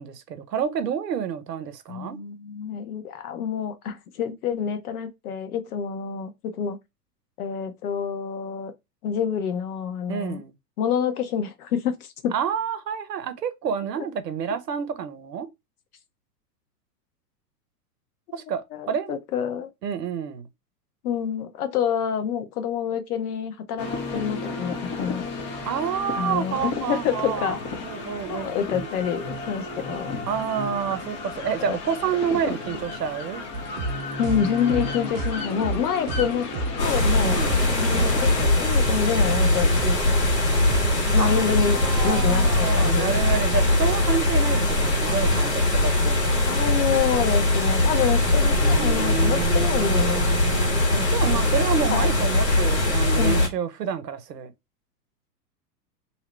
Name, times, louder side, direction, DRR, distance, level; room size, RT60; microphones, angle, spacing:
voice 1, 0.0-2.2 10.1-10.5 12.3-15.5 18.3-19.1 19.8-20.5 25.6-27.6 27.8-28.9 30.3-33.4 37.2-37.5 41.2-46.5 48.5-50.8 51.1-54.5, right 8 dB, 90° right, 0.7 m, -29 dB
voice 2, 1.9-6.8 7.4-8.7 9.0-10.4 10.8-12.3 18.3-18.4 18.7-19.7 21.0-25.2 26.2-27.6 28.3-30.2 31.7-31.8 34.2-36.5 36.8-37.4 37.8-40.0 41.1-43.1 46.5-50.5 50.9-51.1 51.9-52.1 53.2-53.5, left 8 dB, 65° left, 0.8 m, -27 dB
sound 1, 23.8-38.4, left 3 dB, 25° left, 0.5 m, -33 dB
sound 2, 33.5-40.9, right 2 dB, 55° right, 0.6 m, -30 dB
sound 3, 36.8-53.5, left 2 dB, 85° left, 1.4 m, -21 dB
2.7 x 2.0 x 3.0 m
hypercardioid pair, 105°, 48 cm